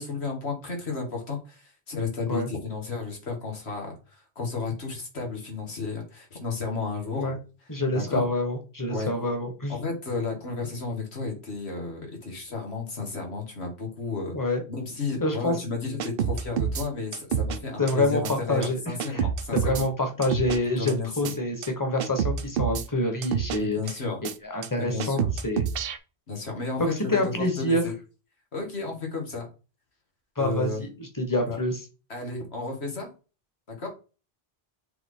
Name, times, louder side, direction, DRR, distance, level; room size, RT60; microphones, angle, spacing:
voice 1, 0.0-7.4 7.9-8.3 8.9-9.1 9.7-14.3 14.7-19.9 20.8-21.3 23.6-24.2 24.8-25.3 26.3-27.9 28.5-29.5 30.4-30.8 31.5-31.6 32.1-33.1 33.8-33.9, left 4 dB, 90° left, 1 dB, 2.2 m, -33 dB
voice 2, 7.7-9.7 14.3-14.6 15.2-15.6 17.8-19.2 19.5-23.8 24.4-25.6 26.9-27.8 30.4-31.8, left 1 dB, 20° left, 4 dB, 1.4 m, -27 dB
sound 1, 16.0-16.9 17.1-17.6 17.9-18.0 18.2-18.4 18.6-18.7 19.0-19.9 20.2-20.6 20.9-21.0 21.2-21.3 21.6-21.7 22.0-22.8 23.2-23.6 23.9-24.0 24.2-24.3 24.6-24.7 25.0-26.0, right 8 dB, 65° right, 0.8 m, -27 dB
7.0 x 3.7 x 3.8 m, 0.33 s
omnidirectional pair, 1.1 m